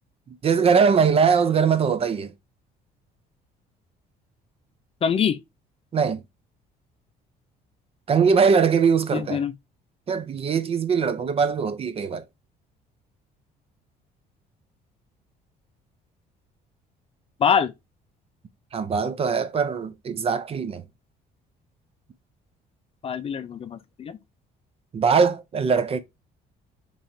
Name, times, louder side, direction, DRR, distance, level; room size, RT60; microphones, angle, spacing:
voice 1, 0.4-2.3 5.9-6.2 8.1-9.4 10.1-12.2 18.7-20.8 24.9-26.0, right 6 dB, 35° right, 0.5 m, -21 dB
voice 2, 5.0-5.4 9.1-9.5 17.4-17.7 23.0-24.2, left 7 dB, 35° left, 0.4 m, -24 dB
4.1 x 3.1 x 2.6 m
cardioid pair, 110°, 17 cm